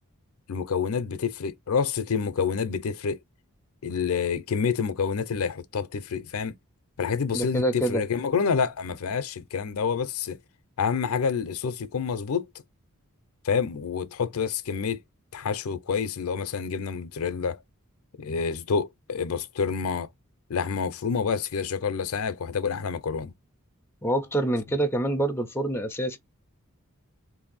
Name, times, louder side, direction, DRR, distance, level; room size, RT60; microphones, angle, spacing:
voice 1, 0.5-3.2 3.8-6.5 7.0-10.4 10.8-12.4 13.4-15.0 15.3-17.6 18.2-20.1 20.5-23.3, left 6 dB, 65° left, 0.5 m, -28 dB
voice 2, 7.3-8.0 24.0-26.2, right 1 dB, 10° left, 0.4 m, -26 dB
3.1 x 2.6 x 3.9 m
head